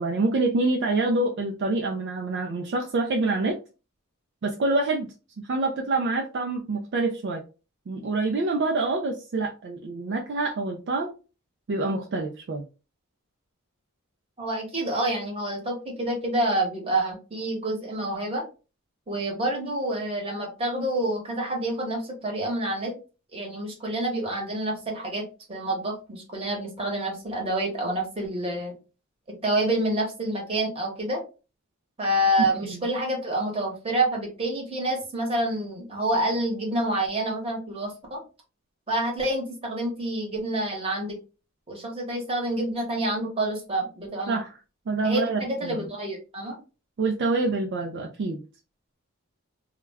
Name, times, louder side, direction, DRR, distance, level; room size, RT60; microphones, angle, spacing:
voice 1, 0.0-3.6 4.4-7.4 7.9-11.1 11.7-12.6 32.7-32.8 44.3-44.5 44.9-45.8 47.0-48.4, right 3 dB, 50° right, 2 dB, 0.3 m, -26 dB
voice 2, 14.4-18.4 19.1-22.9 23.3-28.7 29.4-31.2 32.0-38.2 38.9-41.2 41.7-44.4 45.0-46.6, right 1 dB, 25° right, -1 dB, 0.9 m, -28 dB
2.2 x 2.1 x 3.3 m, 0.32 s
head